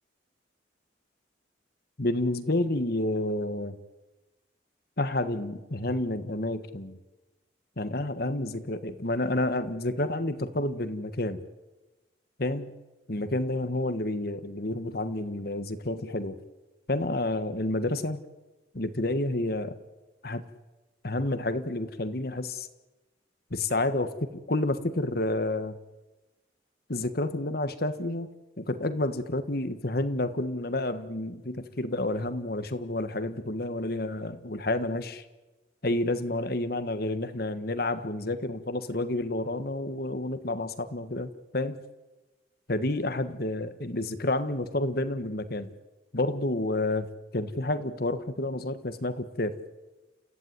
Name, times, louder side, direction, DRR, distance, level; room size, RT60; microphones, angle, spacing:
voice 1, 2.0-3.8 5.0-7.0 7.8-11.4 12.4-12.7 13.1-16.4 16.9-18.2 18.7-19.8 20.2-20.4 21.0-22.7 23.5-25.8 26.9-28.3 28.6-35.2 35.8-41.8 42.7-45.7 46.1-49.5, left 2 dB, 55° left, 11 dB, 1.5 m, -30 dB
29.5 x 15.0 x 9.6 m, 1.1 s
head